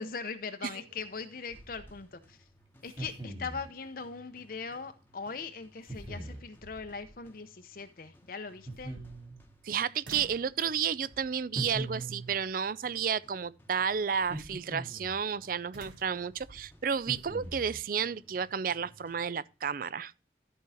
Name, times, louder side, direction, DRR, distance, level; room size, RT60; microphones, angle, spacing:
voice 1, 0.0-2.4 2.8-9.0, left 4 dB, 50° left, 0.7 m, -40 dB
sound 1, 0.8-19.8, equal, 10° left, 1.1 m, -62 dB
sound 2, 0.8-1.2 1.5-2.5 2.9-3.0 5.7-5.8 6.3-7.2 8.6-9.7 10.0-10.5 11.1-11.5 12.3-12.7 15.7-17.6, right 1 dB, 75° right, 2.0 m, -52 dB
sound 3, 2.8-3.7 5.9-6.5 8.7-9.4 11.5-12.4 14.2-15.2 17.0-17.8, right 2 dB, 25° right, 2.2 m, -40 dB
voice 2, 9.6-20.1, right 7 dB, 50° right, 0.4 m, -32 dB
13.0 x 4.7 x 4.8 m
head